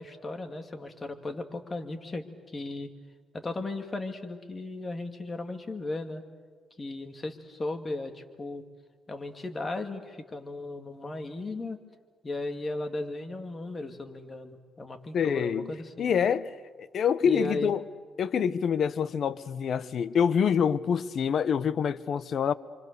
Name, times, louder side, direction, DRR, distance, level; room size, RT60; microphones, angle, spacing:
voice 1, 0.0-2.2 2.5-2.9 3.3-6.2 6.8-8.6 9.1-11.8 12.2-16.1 17.2-17.7, left 2 dB, 25° left, 2.3 m, -36 dB
voice 2, 15.1-15.7 16.0-17.8 18.2-22.5, left 7 dB, 55° left, 0.9 m, -26 dB
28.5 x 25.0 x 6.8 m
cardioid pair, 110°, 0 cm